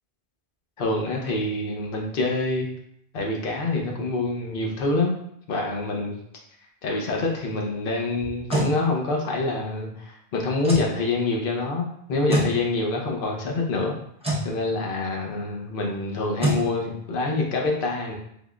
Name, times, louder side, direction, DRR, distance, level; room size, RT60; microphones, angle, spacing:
voice 1, 0.8-2.7 3.1-5.2 5.5-6.2 6.8-13.9 14.4-18.1, left 2 dB, 65° left, 0 dB, 0.8 m, -26 dB
sound 1, 8.2-8.7 10.6-10.9 12.3-12.5 14.2-14.5 16.4-16.6, right 1 dB, 5° right, 0.8 m, -24 dB
3.6 x 3.1 x 2.4 m, 0.72 s
omnidirectional pair, 1.0 m